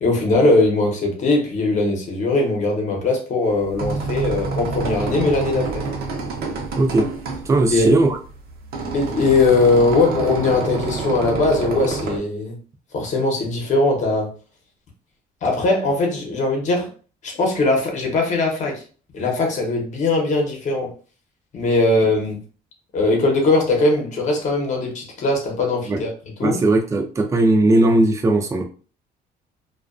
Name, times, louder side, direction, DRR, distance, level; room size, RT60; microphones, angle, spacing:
voice 1, 0.0-5.8 7.7-7.9 8.9-12.6 12.9-14.3 15.4-16.9 17.2-18.8 19.1-20.9 21.5-22.4 22.9-26.1 26.4-26.6, left 2 dB, 45° left, 1 dB, 0.9 m, -20 dB
sound 1, 3.5-12.2, right 4 dB, 65° right, 0.6 m, -28 dB
voice 2, 6.8-7.1 7.5-8.2 25.9-26.0 26.4-28.6, right 2 dB, 20° right, 3 dB, 0.4 m, -17 dB
2.3 x 2.2 x 2.4 m, 0.38 s
cardioid pair, 110°, 17 cm